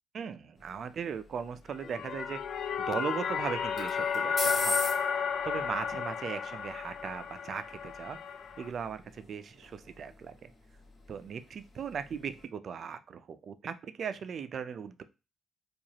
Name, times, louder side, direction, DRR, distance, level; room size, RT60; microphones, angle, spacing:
voice 1, 0.1-8.2 8.6-10.5 11.1-15.0, right 7 dB, 55° right, 11 dB, 0.4 m, -38 dB
sound 1, 0.6-12.5, left 2 dB, 35° left, 1.8 m, -42 dB
sound 2, 1.7-8.7, left 6 dB, 60° left, 0.4 m, -33 dB
4.7 x 2.4 x 2.8 m, 0.29 s
cardioid pair, 90°, 0 cm